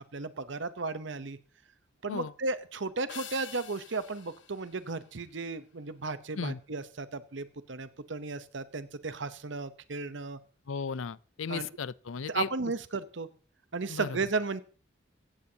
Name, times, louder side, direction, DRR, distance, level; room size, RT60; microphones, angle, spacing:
voice 1, 0.1-1.4 2.0-10.4 11.5-11.7 12.3-13.3 13.7-14.6, right 3 dB, 65° right, 0.8 m, -34 dB
sound 1, 3.1-5.7, left 9 dB, 70° left, 1.5 m, -48 dB
voice 2, 10.7-12.5 13.9-14.2, left 5 dB, 85° left, 0.5 m, -35 dB
16.5 x 16.0 x 2.8 m
head